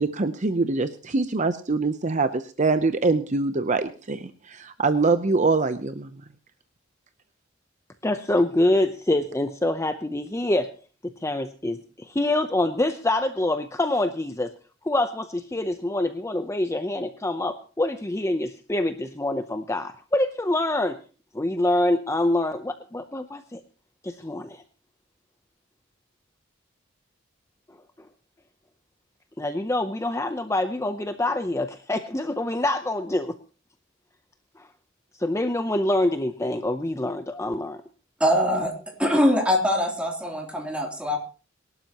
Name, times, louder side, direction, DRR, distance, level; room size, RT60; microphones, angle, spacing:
voice 1, 0.0-6.1, right 3 dB, 40° right, 10 dB, 0.7 m, -24 dB
voice 2, 8.0-10.7 11.2-14.5 14.8-21.0 21.3-23.6 24.0-24.6 29.4-33.4 35.2-37.8, left 1 dB, 15° left, 8 dB, 0.7 m, -25 dB
voice 3, 38.2-38.7 39.0-41.2, equal, 5° right, 1 dB, 3.1 m, -22 dB
23.5 x 12.0 x 3.0 m, 0.35 s
head